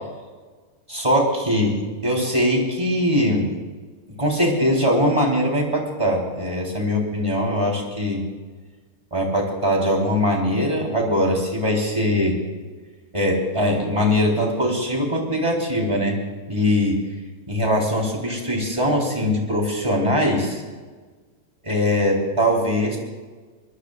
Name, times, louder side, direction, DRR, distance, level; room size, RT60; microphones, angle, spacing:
voice 1, 0.9-3.5 4.2-8.2 9.1-12.4 13.1-16.2 16.5-17.0 17.5-20.6 21.6-23.0, equal, 10° right, -1 dB, 3.2 m, -21 dB
25.0 x 20.0 x 2.5 m, 1.4 s
omnidirectional pair, 5.0 m